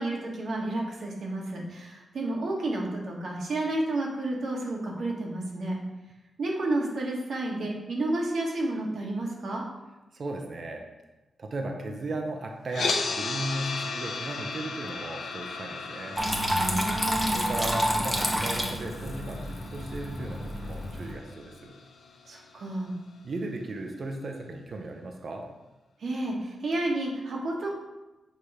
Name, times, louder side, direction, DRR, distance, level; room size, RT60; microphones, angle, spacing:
voice 1, 0.0-5.8 6.4-9.6 16.5-17.4 22.3-22.9 26.0-27.7, right 2 dB, 65° right, -1 dB, 1.3 m, -31 dB
voice 2, 10.1-10.9 11.4-16.2 17.3-21.8 23.2-25.5, right 2 dB, 45° right, 3 dB, 0.7 m, -36 dB
sound 1, 12.7-22.8, left 4 dB, 75° left, 0.7 m, -36 dB
Water tap faucet / Trickle dribble, 16.2-21.1, equal, 10° right, 0.9 m, -29 dB
6.7 x 2.9 x 4.8 m, 1.0 s
wide cardioid pair, 125°, 0 cm